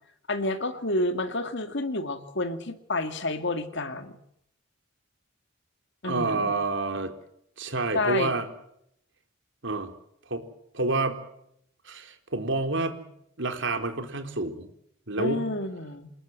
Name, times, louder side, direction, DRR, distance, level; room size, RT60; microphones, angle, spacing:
voice 1, 0.3-4.2 6.0-6.6 7.9-8.3 15.2-16.1, left 2 dB, 60° left, 9 dB, 2.4 m, -29 dB
voice 2, 6.0-7.1 7.6-8.5 9.6-9.9 10.3-10.4 10.7-11.2 11.9-13.0 13.4-14.7 15.1-15.5, right 3 dB, 65° right, 7 dB, 3.9 m, -28 dB
27.5 x 20.5 x 7.8 m, 0.74 s
head